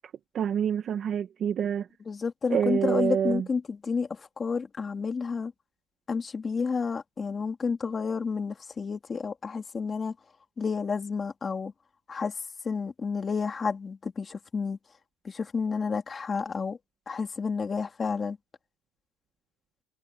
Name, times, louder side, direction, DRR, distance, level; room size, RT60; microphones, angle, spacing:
voice 1, 0.3-1.9 2.5-3.4, right 8 dB, 40° right, 1.6 m, -27 dB
voice 2, 2.1-5.5 6.1-10.2 10.6-11.7 12.1-12.4 12.6-14.8 15.2-16.8 17.1-18.4, left 5 dB, 20° left, 2.4 m, -30 dB
cardioid pair, 150°, 0 cm